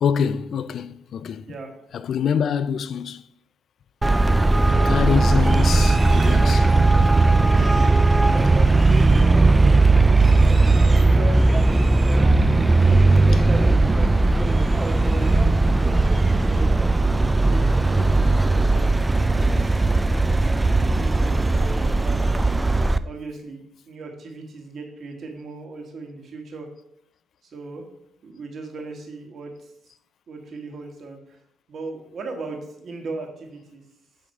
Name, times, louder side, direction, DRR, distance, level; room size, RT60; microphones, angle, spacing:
voice 1, 0.0-1.5 1.9-3.2 4.2-4.4 4.8-6.7, left 7 dB, 60° left, 0.3 m, -25 dB
Traffic noise roadway noise, 4.0-23.0, right 2 dB, 15° right, 0.3 m, -17 dB
voice 2, 4.7-5.4 7.5-9.8 10.4-15.8 16.4-16.7 17.4-20.0 20.4-22.6 23.0-26.7 27.5-27.8 28.2-29.7 30.3-31.4 31.7-33.8, right 3 dB, 55° right, 1.6 m, -37 dB
Livestock farm animals working animals, 5.3-13.2 13.5-13.8 14.2-15.5 15.8-16.9, right 3 dB, 35° right, 0.9 m, -42 dB
8.5 x 3.2 x 5.3 m
cardioid pair, 90°, 0 cm